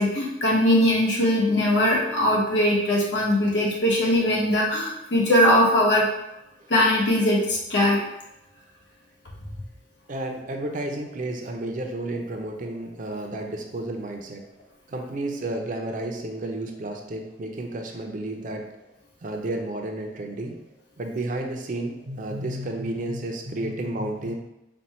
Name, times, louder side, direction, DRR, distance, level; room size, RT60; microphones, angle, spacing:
voice 1, 0.0-6.1 6.7-8.0, left 1 dB, 85° left, -4 dB, 1.2 m, -20 dB
voice 2, 10.1-14.4 14.9-18.6 19.2-20.6 21.0-24.3, right 1 dB, 50° right, 3 dB, 0.5 m, -31 dB
4.2 x 2.3 x 4.1 m, 0.89 s
head